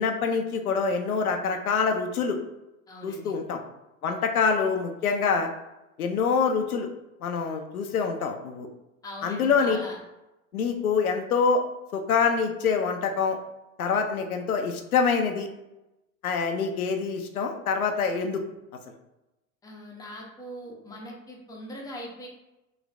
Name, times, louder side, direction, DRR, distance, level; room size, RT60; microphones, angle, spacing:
voice 1, 0.0-2.4 3.0-3.6 4.0-5.5 6.0-6.9 7.2-8.7 9.2-9.8 10.5-11.6 11.9-13.4 13.8-15.5 16.2-18.4, left 5 dB, 85° left, 5 dB, 0.5 m, -25 dB
voice 2, 2.9-3.4 4.1-4.2 9.0-10.0 19.6-22.3, left 1 dB, 10° left, -2 dB, 0.7 m, -41 dB
3.1 x 3.0 x 2.5 m, 0.96 s
figure-of-eight pair, 85°, 42 cm